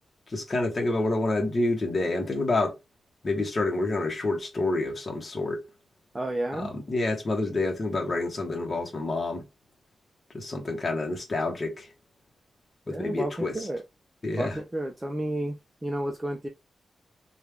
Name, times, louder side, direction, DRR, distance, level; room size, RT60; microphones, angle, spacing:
voice 1, 0.3-2.8 3.2-5.7 6.5-9.4 10.3-11.9 12.9-13.7 14.2-14.6, left 2 dB, 35° left, 1.1 m, -28 dB
voice 2, 6.1-6.7 12.9-13.8 14.4-15.5 15.8-16.5, right 1 dB, 15° right, 0.5 m, -31 dB
3.2 x 2.4 x 3.3 m
wide cardioid pair, 130°, 0 cm